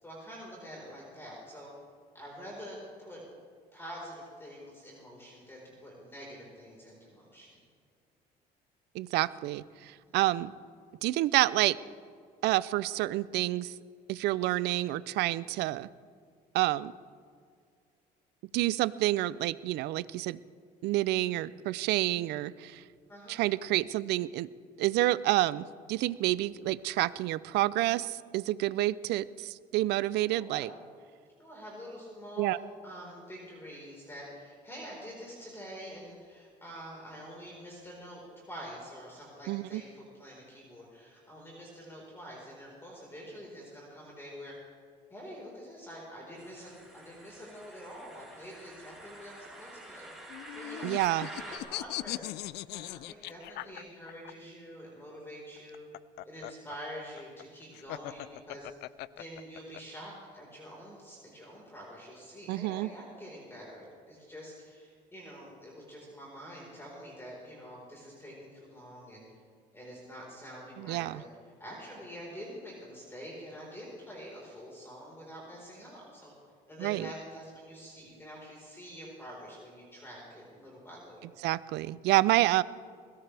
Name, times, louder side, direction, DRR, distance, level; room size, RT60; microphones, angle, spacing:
voice 1, 0.0-1.7 2.1-3.2 3.7-7.6 10.1-10.2 23.1-23.5 30.3-30.8 31.4-44.5 45.1-50.1 50.5-50.9 51.2-55.9 56.2-58.7 59.1-69.2 69.7-71.3 71.6-76.3 76.7-81.3, equal, 15° left, -4 dB, 4.5 m, -46 dB
voice 2, 8.9-10.5 11.0-11.8 12.4-13.8 14.1-15.9 16.5-16.9 18.5-20.4 20.8-22.8 23.3-24.5 24.8-30.7 32.4-32.6 39.5-39.8 50.8-51.3 62.5-62.9 70.8-71.2 76.8-77.1 81.4-82.6, right 16 dB, 85° right, 18 dB, 0.5 m, -28 dB
sound 1, 46.4-51.6, right 1 dB, ahead, 4.3 m, -48 dB
sound 2, 50.3-54.3 55.6-59.8, left 17 dB, 80° left, 0.4 m, -40 dB
21.5 x 17.0 x 3.4 m, 2.1 s
cardioid pair, 110°, 17 cm